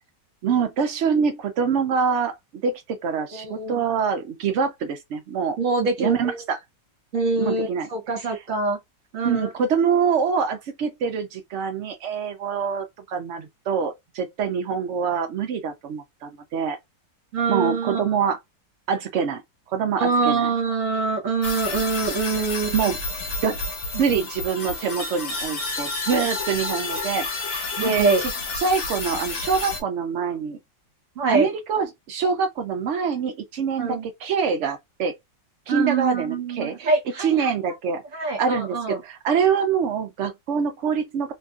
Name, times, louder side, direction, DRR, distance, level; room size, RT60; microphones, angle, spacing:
voice 1, 0.4-2.4 2.6-5.6 6.0-6.6 7.4-7.9 9.2-16.8 17.5-18.4 18.9-19.4 19.7-20.5 22.7-23.0 23.4-23.6 24.0-30.6 31.3-35.1 35.7-36.9 37.2-41.3, right 6 dB, 80° right, 0.6 m, -25 dB
voice 2, 3.3-3.9 5.6-6.4 7.1-8.8 9.1-9.5 17.3-18.2 20.0-22.8 27.8-28.2 31.2-31.5 33.8-34.1 35.7-37.5 38.1-39.0, right 4 dB, 55° right, 1.1 m, -24 dB
sound 1, 21.4-29.8, left 3 dB, 60° left, 1.1 m, -30 dB
2.8 x 2.6 x 2.3 m
omnidirectional pair, 1.9 m